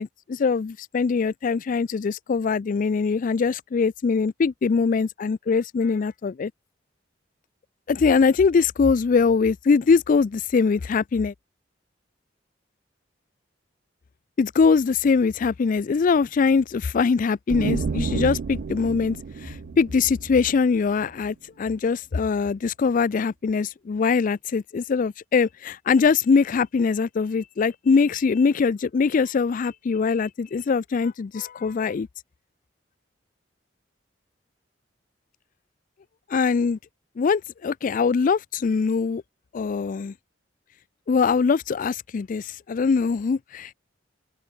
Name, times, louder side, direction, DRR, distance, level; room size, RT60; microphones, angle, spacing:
voice 1, 0.0-6.5 7.9-11.3 14.4-19.2 19.4-32.1 36.3-36.8 37.2-39.2 39.5-40.1 41.1-43.7, left 5 dB, 45° left, 0.4 m, -22 dB
sound 1, 17.5-21.1, right 5 dB, 55° right, 0.4 m, -30 dB
head